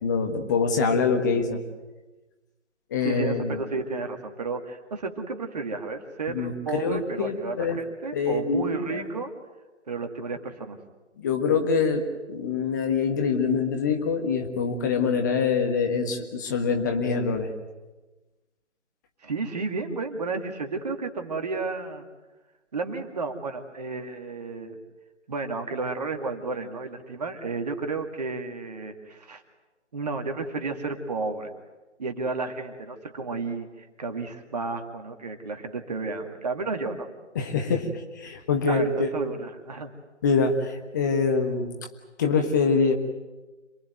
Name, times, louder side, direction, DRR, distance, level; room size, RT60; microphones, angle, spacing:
voice 1, 0.0-1.6 2.9-3.6 6.3-7.8 8.1-9.1 11.2-17.5 37.3-37.9 38.1-39.1 40.2-41.7 42.2-42.9, left 5 dB, 15° left, 4 dB, 1.4 m, -25 dB
voice 2, 3.0-9.3 9.9-10.8 19.2-22.1 22.7-24.8 25.3-29.4 29.9-31.5 32.0-37.1 38.7-39.9, right 3 dB, 35° right, 5 dB, 2.3 m, -32 dB
27.5 x 19.0 x 9.2 m, 1.2 s
figure-of-eight pair, 155°, 36 cm